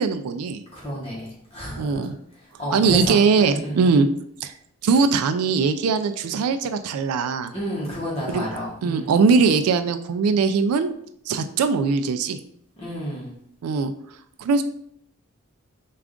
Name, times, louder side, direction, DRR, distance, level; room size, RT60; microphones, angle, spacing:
voice 1, 0.0-0.6 1.8-2.1 2.7-4.1 4.4-4.5 4.8-7.5 8.3-8.5 8.8-10.9 11.3-12.4 13.6-13.9 14.4-14.6, right 5 dB, 85° right, 10 dB, 0.3 m, -20 dB
voice 2, 0.7-2.0 2.6-3.9 7.5-9.1 12.8-13.3, equal, 25° left, -6 dB, 1.0 m, -30 dB
3.5 x 2.4 x 3.6 m, 0.68 s
head